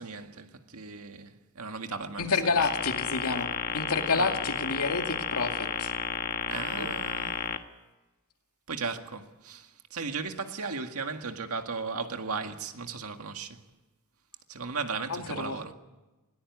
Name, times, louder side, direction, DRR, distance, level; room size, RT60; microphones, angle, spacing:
voice 1, 0.0-2.4 4.1-4.4 6.5-7.5 8.7-13.6 14.5-15.7, right 4 dB, 85° right, 1.9 m, -36 dB
voice 2, 2.2-5.9 6.8-6.9 15.1-15.6, left 4 dB, 85° left, 2.4 m, -29 dB
sound 1, 2.6-7.6, left 6 dB, 45° left, 1.4 m, -32 dB
20.5 x 19.0 x 9.7 m
head